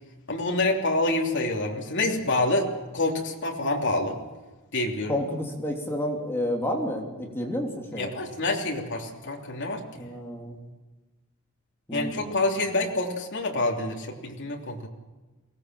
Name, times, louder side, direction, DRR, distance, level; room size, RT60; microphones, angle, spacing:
voice 1, 0.3-2.7 2.9-4.2 4.7-5.2 8.0-10.0 11.9-14.9, left 2 dB, 60° left, 0 dB, 3.1 m, -27 dB
voice 2, 5.1-8.1 10.0-10.6 11.9-12.3, left 1 dB, 10° left, 0 dB, 3.0 m, -30 dB
23.0 x 18.5 x 7.6 m, 1.2 s
head